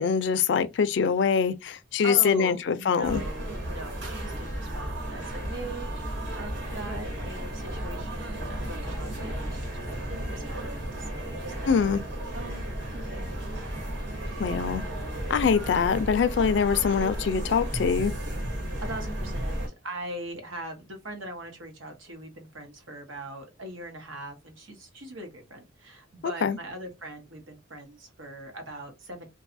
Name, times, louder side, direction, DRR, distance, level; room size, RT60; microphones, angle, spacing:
voice 1, 0.0-3.2 11.7-12.0 14.4-14.8 15.3-18.1 26.4-26.6, left 6 dB, 65° left, 0.3 m, -24 dB
voice 2, 2.0-12.0 12.3-12.7 12.9-13.3 18.8-29.3, right 1 dB, 90° right, 1.0 m, -41 dB
sound 1, 3.0-19.7, right 1 dB, 70° right, 1.2 m, -34 dB
2.6 x 2.3 x 2.5 m
head